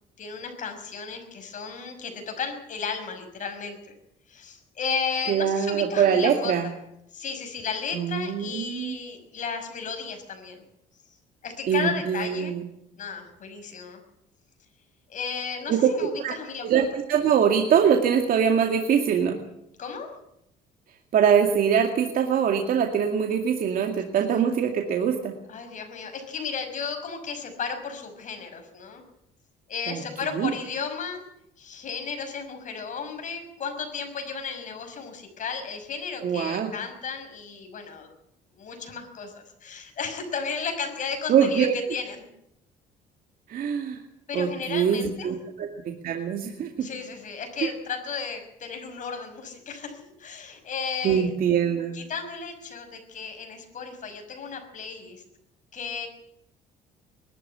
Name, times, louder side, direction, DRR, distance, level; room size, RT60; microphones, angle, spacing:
voice 1, 0.2-3.8 4.3-6.5 7.1-10.6 11.4-12.5 13.0-14.0 15.1-16.7 19.8-20.1 25.5-29.0 29.7-31.2 31.6-38.1 38.6-42.3 44.3-45.3 46.8-51.3 51.9-55.2 55.7-56.1, left 5 dB, 50° left, 6 dB, 5.8 m, -34 dB
voice 2, 5.3-6.7 7.9-9.0 11.7-12.6 15.7-15.9 16.2-16.3 16.6-19.4 21.1-25.3 29.9-30.0 30.3-30.5 36.2-36.7 41.3-41.7 43.5-44.0 44.3-46.9 47.6-47.7 51.0-52.0, right 8 dB, 60° right, 3 dB, 2.3 m, -23 dB
21.0 x 13.0 x 9.8 m, 0.79 s
cardioid pair, 110°, 17 cm